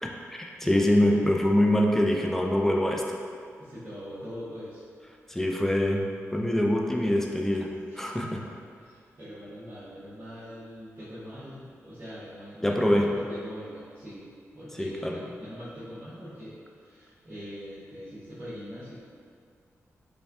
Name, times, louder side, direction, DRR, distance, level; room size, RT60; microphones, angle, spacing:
voice 1, 0.0-3.0 5.3-6.1 6.3-7.7 8.0-8.4 12.6-13.1 14.8-15.2, left 1 dB, 5° left, 0 dB, 0.5 m, -24 dB
voice 2, 0.6-1.3 3.6-4.8 7.9-8.5 8.8-14.3 14.5-19.0, equal, 45° right, -14 dB, 1.2 m, -42 dB
5.5 x 2.2 x 2.7 m, 2.3 s
cardioid pair, 50°, 6 cm